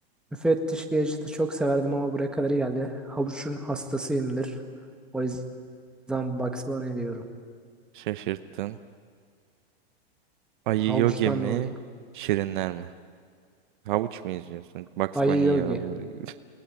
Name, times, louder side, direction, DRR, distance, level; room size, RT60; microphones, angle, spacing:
voice 1, 0.4-4.6 5.1-5.4 6.1-7.2 10.9-11.7 15.1-15.8, right 2 dB, 5° right, 3 dB, 1.7 m, -27 dB
voice 2, 7.9-8.8 10.7-11.7 12.1-12.9 13.9-16.4, right 14 dB, 55° right, 12 dB, 0.9 m, -29 dB
29.5 x 19.5 x 9.6 m, 2.1 s
hypercardioid pair, 150°, 31 cm